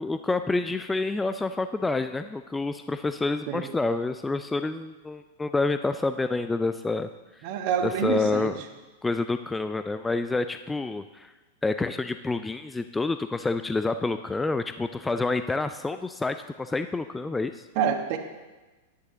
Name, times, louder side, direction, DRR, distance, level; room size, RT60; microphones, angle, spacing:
voice 1, 0.0-7.1 7.4-7.5 7.8-8.6 9.0-11.3 11.6-17.7, left 3 dB, 10° left, 10 dB, 0.3 m, -28 dB
voice 2, 7.4-8.5 17.7-18.2, right 7 dB, 45° right, 5 dB, 1.2 m, -26 dB
11.0 x 9.6 x 3.8 m, 1.2 s
figure-of-eight pair, 100°, 0 cm